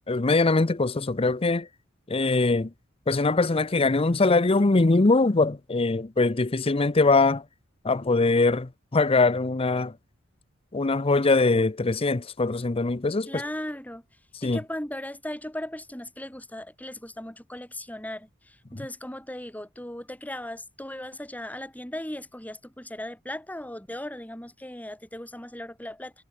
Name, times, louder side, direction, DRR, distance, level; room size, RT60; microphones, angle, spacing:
voice 1, 0.1-1.7 2.1-2.7 3.1-7.4 7.8-9.9 10.7-13.3 14.4-14.6, left 3 dB, 30° left, 0.7 m, -22 dB
voice 2, 13.3-14.0 14.4-26.2, left 1 dB, 10° left, 6.1 m, -37 dB
head